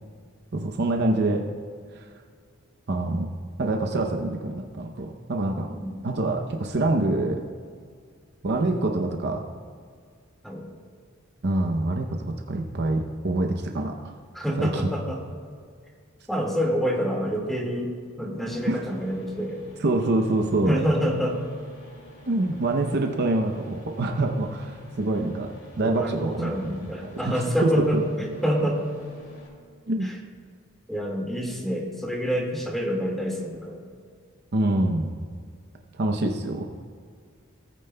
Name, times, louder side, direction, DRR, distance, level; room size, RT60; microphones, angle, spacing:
voice 1, 0.5-1.4 2.0-2.1 2.9-3.3 3.6-5.7 6.0-7.4 8.4-9.4 11.4-14.1 14.6-14.8 18.7-18.8 19.8-20.8 22.3-25.5 25.8-26.7 27.3-28.0 29.9-30.1 34.5-35.2 35.9-36.7, right 2 dB, 55° right, 3 dB, 0.7 m, -25 dB
voice 2, 5.7-6.0 10.4-10.7 14.3-15.2 16.3-17.9 18.2-19.6 20.6-21.4 25.8-28.8 30.0-30.2 30.9-33.8, equal, ahead, -2 dB, 1.8 m, -27 dB
sound 1, 18.4-29.5, equal, 50° left, 2.4 m, -49 dB
17.5 x 9.2 x 2.2 m, 2.1 s
head